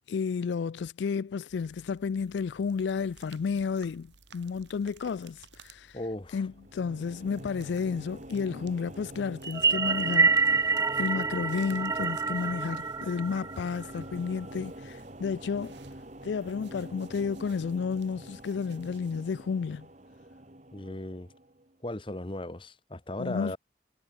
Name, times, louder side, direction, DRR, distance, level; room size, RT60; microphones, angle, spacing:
voice 1, 0.1-6.0 6.3-15.8 16.2-19.9 23.2-23.6, left 5 dB, 80° left, 0.4 m, -32 dB
sound 1, 1.5-20.4, right 4 dB, 80° right, 3.7 m, -58 dB
voice 2, 5.9-6.5 20.7-21.3 21.8-23.6, left 1 dB, 30° left, 1.3 m, -37 dB
sound 2, 6.4-21.8, right 1 dB, 40° right, 2.7 m, -46 dB
sound 3, 9.4-14.0, right 4 dB, 15° right, 0.3 m, -27 dB
head